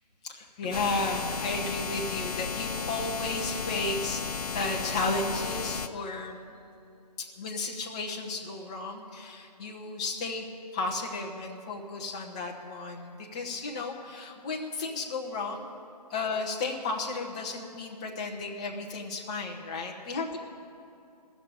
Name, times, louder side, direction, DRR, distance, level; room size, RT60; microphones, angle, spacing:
voice 1, 0.2-6.4 7.2-10.5 10.7-15.7 16.1-20.4, left 3 dB, 10° left, 0 dB, 0.5 m, -33 dB
sound 1, 0.7-5.9, left 5 dB, 60° left, 0.6 m, -34 dB
14.0 x 7.0 x 9.9 m, 2.6 s
figure-of-eight pair, 155°, 21 cm